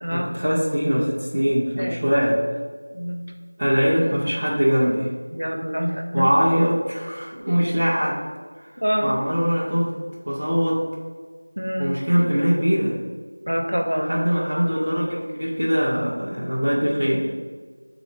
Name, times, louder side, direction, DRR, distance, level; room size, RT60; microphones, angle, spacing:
voice 1, 0.1-2.4 3.6-5.1 6.1-8.2 9.0-9.9 10.3-10.9 11.8-13.0 14.0-17.3, equal, 5° right, -14 dB, 0.3 m, -22 dB
voice 2, 2.9-3.3 5.3-6.3 8.8-9.1 11.6-12.0 13.5-14.2, equal, 55° right, 3 dB, 0.7 m, -25 dB
7.7 x 3.8 x 3.1 m, 1.5 s
figure-of-eight pair, 180°, 0 cm